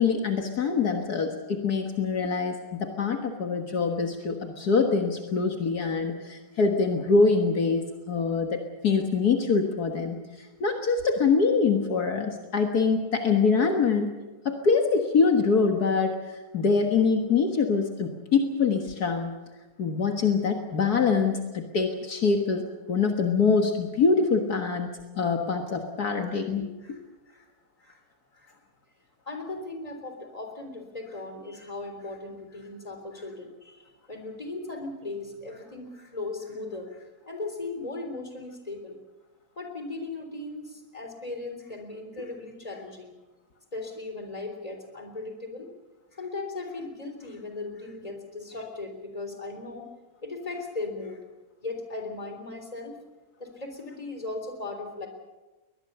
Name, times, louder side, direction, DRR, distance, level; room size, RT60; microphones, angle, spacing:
voice 1, 0.0-10.2 10.6-14.1 14.5-16.2 16.5-19.3 19.8-27.0, left 4 dB, 65° left, 4 dB, 2.1 m, -24 dB
voice 2, 29.3-39.0 39.6-43.2 43.7-45.7 46.1-49.9 50.2-51.2 51.6-53.0 53.4-55.1, left 3 dB, 20° left, 5 dB, 3.6 m, -37 dB
22.5 x 20.0 x 6.8 m, 1.1 s
omnidirectional pair, 1.8 m